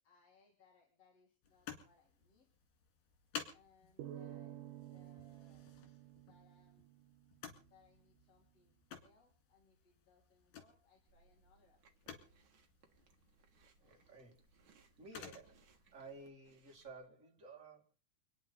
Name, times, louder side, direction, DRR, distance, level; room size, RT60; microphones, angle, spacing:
voice 1, 0.0-2.5 3.5-4.6 4.8-5.6 6.3-7.0 7.6-12.3, left 5 dB, 45° left, 3.1 m, -71 dB
sound 1, 1.4-16.3, left 7 dB, 75° left, 4.1 m, -55 dB
sound 2, 4.0-7.4, right 12 dB, 70° right, 2.4 m, -51 dB
Chewing mastication, 11.1-17.1, right 4 dB, 50° right, 1.5 m, -71 dB
voice 2, 13.8-14.4 15.0-15.7 15.9-17.9, right 3 dB, 25° right, 2.3 m, -54 dB
27.5 x 9.9 x 4.1 m
omnidirectional pair, 4.4 m